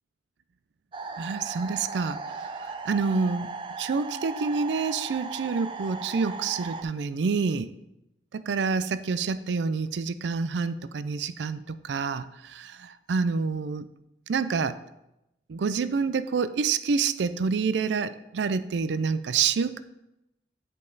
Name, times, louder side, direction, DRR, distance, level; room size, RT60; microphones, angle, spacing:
sound 1, 0.9-6.8, right 4 dB, 30° right, 0.5 m, -37 dB
voice 1, 1.2-2.2 2.6-3.5 3.8-7.7 8.3-13.9 14.3-14.8 15.5-19.8, right 5 dB, 85° right, 14 dB, 0.4 m, -27 dB
9.7 x 5.3 x 3.9 m, 0.89 s
head